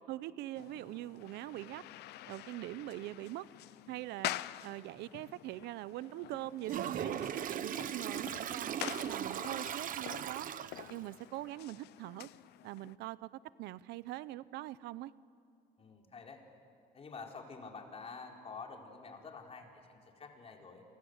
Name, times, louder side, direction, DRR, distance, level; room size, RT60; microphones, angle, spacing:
voice 1, 0.1-1.8 2.3-3.5 3.9-4.4 4.6-10.5 10.9-12.3 12.6-13.3 13.6-15.1, right 16 dB, 85° right, 18 dB, 0.7 m, -43 dB
sound 1, 0.5-13.0, left 15 dB, 80° left, 0.7 m, -47 dB
Toilet flush, 6.7-11.0, right 9 dB, 55° right, 1.0 m, -38 dB
voice 2, 15.8-16.4 16.9-20.8, left 4 dB, 35° left, 1 dB, 4.3 m, -48 dB
29.5 x 23.5 x 8.1 m, 2.5 s
cardioid pair, 110°, 17 cm